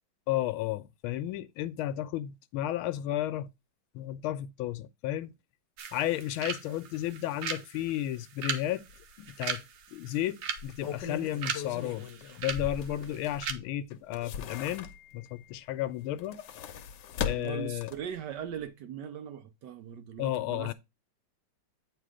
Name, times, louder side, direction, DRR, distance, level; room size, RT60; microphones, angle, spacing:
voice 1, 0.3-3.5 3.9-5.3 5.9-8.8 9.2-9.6 9.9-12.1 12.4-16.4 17.2-17.9 20.2-20.7, left 13 dB, 85° left, 1.4 m, -33 dB
sound 1, 5.8-13.5, right 7 dB, 85° right, 1.8 m, -39 dB
sound 2, 8.9-9.0 9.4-9.5 10.5-13.5 13.9-15.3 16.1-18.2 18.6-18.7, left 7 dB, 65° left, 1.2 m, -39 dB
voice 2, 17.4-20.7, right 9 dB, 70° right, 1.1 m, -40 dB
8.7 x 3.3 x 4.8 m
omnidirectional pair, 2.3 m